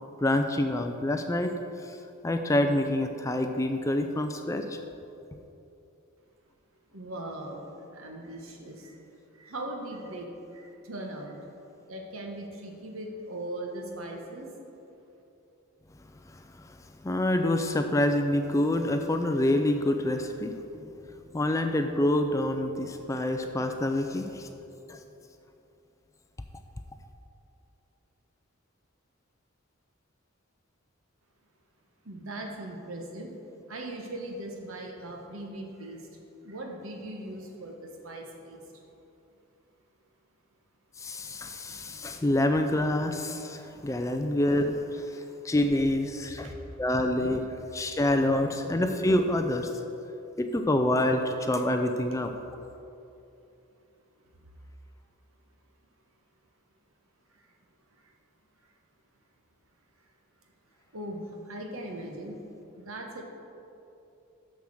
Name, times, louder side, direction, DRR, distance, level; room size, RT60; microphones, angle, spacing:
voice 1, 0.2-1.5 1.8-2.0 2.2-4.8 16.3-16.8 17.0-20.8 21.3-24.5 24.9-25.0 41.0-46.5 46.8-49.7 50.4-52.3, left 1 dB, 15° left, 6 dB, 0.3 m, -27 dB
voice 2, 6.9-9.0 9.3-11.4 11.9-14.5 32.0-33.3 33.7-36.1 36.4-38.6 46.4-46.6 57.3-57.4 58.0-58.1 60.9-62.4 62.8-63.2, right 1 dB, 75° right, 1 dB, 1.2 m, -39 dB
6.8 x 6.5 x 6.2 m, 2.8 s
head